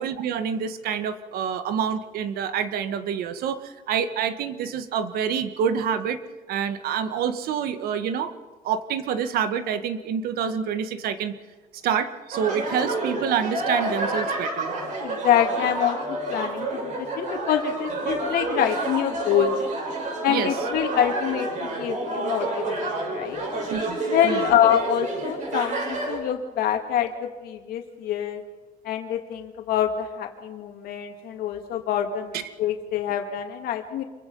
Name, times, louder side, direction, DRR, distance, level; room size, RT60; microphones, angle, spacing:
voice 1, 0.0-6.2 6.5-8.3 8.6-11.4 11.8-14.7 20.3-20.5 23.7-24.0 24.2-24.4 32.3-32.4, right 7 dB, 85° right, 10 dB, 1.6 m, -27 dB
sound 1, 12.3-26.2, right 2 dB, 55° right, 6.6 m, -29 dB
voice 2, 15.0-19.6 20.2-23.4 24.1-28.4 28.8-34.0, left 10 dB, 80° left, 4 dB, 2.2 m, -26 dB
26.5 x 23.0 x 5.5 m, 1.4 s
cardioid pair, 150°, 15 cm